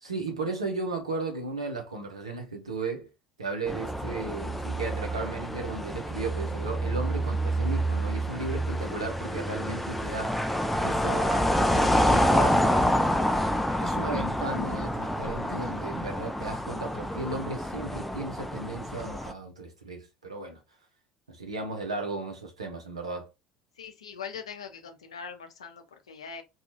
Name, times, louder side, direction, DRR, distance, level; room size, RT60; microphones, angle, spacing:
voice 1, 0.0-3.1 3.4-10.5 10.8-12.7 13.8-20.6 21.3-23.3, right 3 dB, 80° right, 0.7 m, -35 dB
sound 1, 3.7-19.3, equal, 5° left, 0.3 m, -27 dB
voice 2, 23.8-26.4, left 6 dB, 75° left, 0.5 m, -41 dB
2.7 x 2.3 x 2.8 m
figure-of-eight pair, 65°, 3 cm